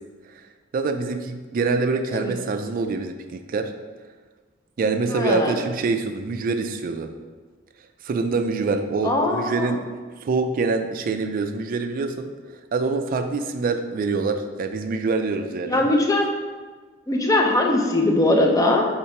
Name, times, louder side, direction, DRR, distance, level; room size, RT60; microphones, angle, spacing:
voice 1, 0.7-3.7 4.8-7.1 8.0-9.9 10.2-12.3 12.7-15.9, right 4 dB, 45° right, 7 dB, 0.3 m, -25 dB
voice 2, 5.1-5.6 9.0-9.7 15.7-16.3 17.1-18.9, left 2 dB, 15° left, 1 dB, 0.5 m, -20 dB
3.6 x 2.9 x 4.3 m, 1.4 s
head